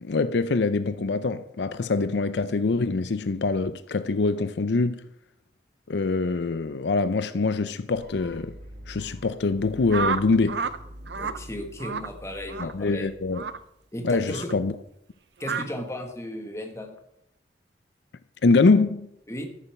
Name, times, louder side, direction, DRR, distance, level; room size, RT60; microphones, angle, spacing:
voice 1, 0.0-5.0 5.9-8.6 8.9-10.6 12.6-13.4 14.0-14.7 18.4-19.1, left 3 dB, 80° left, 0.5 m, -24 dB
sound 1, 7.9-13.9, equal, 60° right, 1.8 m, -46 dB
sound 2, 9.9-10.8 11.1-11.4 11.8-12.1 12.5-12.7 13.3-13.6 14.3-14.5 15.4-15.7, right 5 dB, 80° right, 0.6 m, -29 dB
voice 2, 11.1-13.1 13.9-14.5 15.4-17.0 19.3-19.5, left 1 dB, 15° left, 1.5 m, -35 dB
13.5 x 7.1 x 5.8 m
head